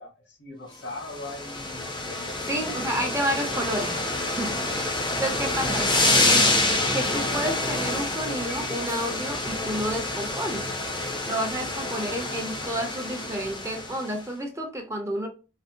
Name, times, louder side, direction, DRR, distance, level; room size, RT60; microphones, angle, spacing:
voice 1, 0.0-2.7 4.4-4.7 5.5-5.9, left 2 dB, 85° left, 1 dB, 1.2 m, -41 dB
sound 1, 0.9-14.2, left 2 dB, 25° left, 0.6 m, -27 dB
voice 2, 2.5-5.9 6.2-6.5 6.9-10.7 11.3-15.3, right 1 dB, 15° right, 2 dB, 0.7 m, -30 dB
4.0 x 2.0 x 2.5 m, 0.30 s
head